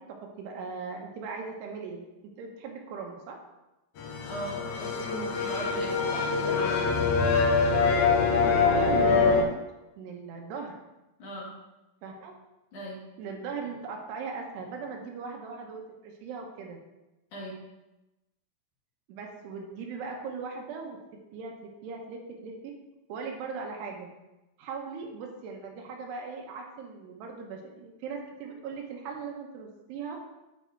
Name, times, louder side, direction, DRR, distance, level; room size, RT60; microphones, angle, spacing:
voice 1, 0.1-2.1 2.4-3.4 8.4-9.5 10.0-10.8 12.0-12.3 13.2-16.8 19.1-21.0 21.3-22.7 23.1-24.1 24.6-30.2, right 5 dB, 80° right, 1 dB, 3.2 m, -39 dB
sound 1, 4.0-9.4, left 4 dB, 75° left, 1.7 m, -24 dB
voice 2, 4.2-7.4 11.2-11.5 12.7-13.0 17.3-17.6, equal, 55° left, -6 dB, 3.1 m, -38 dB
9.7 x 4.7 x 4.6 m, 1.0 s
omnidirectional pair, 4.8 m